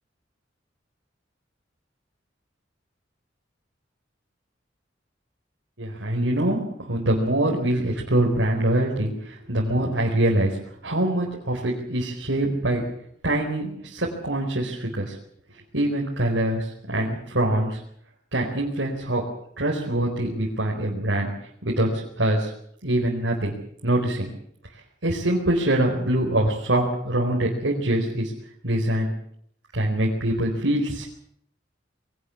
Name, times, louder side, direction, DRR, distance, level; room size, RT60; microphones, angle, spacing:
voice 1, 5.8-10.5 10.8-12.8 13.2-15.2 15.7-17.8 18.3-19.2 19.6-21.3 21.6-22.5 22.8-23.5 23.8-24.3 25.0-28.3 28.6-29.1 29.7-31.0, right 1 dB, 75° right, -2 dB, 4.6 m, -24 dB
22.5 x 18.5 x 7.2 m, 0.66 s
head